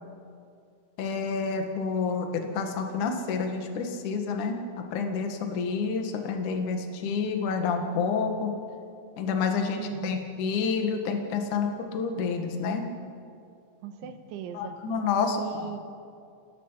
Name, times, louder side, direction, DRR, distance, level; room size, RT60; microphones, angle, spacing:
voice 1, 1.0-4.6 4.9-8.5 9.2-12.8 14.5-15.7, left 5 dB, 55° left, 4 dB, 2.6 m, -29 dB
voice 2, 9.8-10.2 13.8-14.7 15.3-15.8, right 9 dB, 85° right, 8 dB, 3.5 m, -38 dB
29.5 x 19.0 x 5.8 m, 2.4 s
omnidirectional pair, 5.5 m